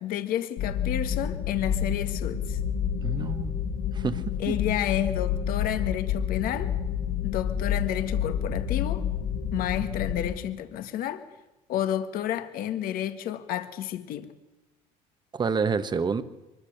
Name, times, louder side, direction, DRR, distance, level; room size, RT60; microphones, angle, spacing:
voice 1, 0.0-2.6 4.4-6.7 7.2-9.1 9.5-11.2 11.7-14.3, left 11 dB, 65° left, 1.6 m, -30 dB
sound 1, 0.6-10.3, left 8 dB, 85° left, 4.4 m, -29 dB
voice 2, 3.0-4.5 15.3-16.2, right 5 dB, 25° right, 1.3 m, -29 dB
24.0 x 21.0 x 6.7 m
cardioid pair, 115°, 16 cm